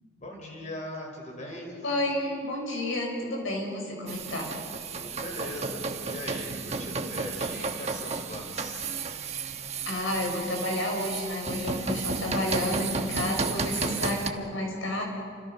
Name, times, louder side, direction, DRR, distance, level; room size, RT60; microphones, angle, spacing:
voice 1, 0.2-1.9 4.9-8.9, left 1 dB, 35° left, 1 dB, 5.4 m, -40 dB
voice 2, 1.8-4.5 9.9-15.0, left 1 dB, 80° left, 0 dB, 6.5 m, -31 dB
sound 1, 4.1-14.3, right 4 dB, 30° right, 1.2 m, -33 dB
28.5 x 26.0 x 5.7 m, 2.2 s
head